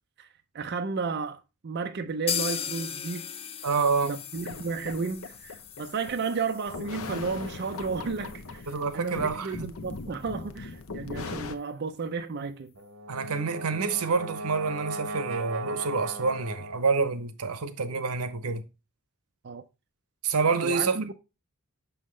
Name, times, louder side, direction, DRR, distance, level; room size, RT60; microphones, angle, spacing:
voice 1, 0.5-3.3 4.0-8.7 8.9-12.7 19.4-19.6 20.6-21.2, right 4 dB, 50° right, 0.5 m, -33 dB
sound 1, 2.3-10.0 10.3-10.4 10.7-10.8 11.2-11.3, left 8 dB, 25° left, 0.4 m, -38 dB
voice 2, 3.6-4.2 8.7-9.7 13.1-18.6 20.2-21.0, right 4 dB, 85° right, 0.8 m, -27 dB
sound 2, 4.3-11.6, left 3 dB, 70° left, 0.7 m, -40 dB
Brass instrument, 12.8-17.0, right 2 dB, 70° right, 1.2 m, -37 dB
6.3 x 5.7 x 3.1 m
head